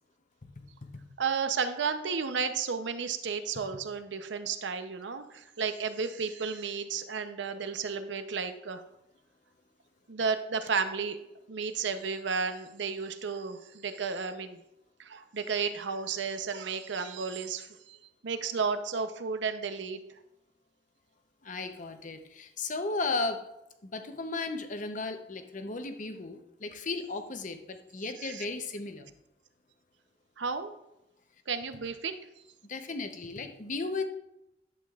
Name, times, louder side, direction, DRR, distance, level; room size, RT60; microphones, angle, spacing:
voice 1, 1.2-8.8 10.1-11.2 11.5-14.6 15.0-18.0 18.2-20.0 28.2-28.4 30.4-30.7 31.5-32.2, right 5 dB, 75° right, 9 dB, 0.7 m, -33 dB
voice 2, 21.4-23.4 23.8-29.1 32.7-34.0, left 3 dB, 45° left, 7 dB, 0.7 m, -35 dB
11.0 x 8.1 x 2.4 m, 0.88 s
head